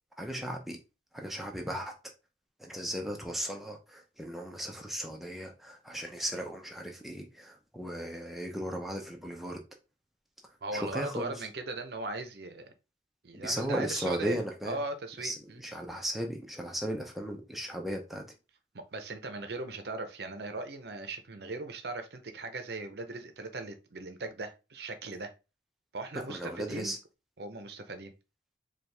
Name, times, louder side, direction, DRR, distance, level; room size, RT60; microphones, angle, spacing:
voice 1, 0.2-0.8 1.1-1.9 2.6-9.6 10.7-11.5 13.3-14.8 15.2-18.3 26.1-27.0, equal, ahead, 0.6 m, -36 dB
voice 2, 10.6-12.7 13.2-15.6 18.7-25.3 25.9-26.9 27.4-28.1, right 2 dB, 60° right, 0.6 m, -38 dB
4.5 x 2.4 x 3.3 m
head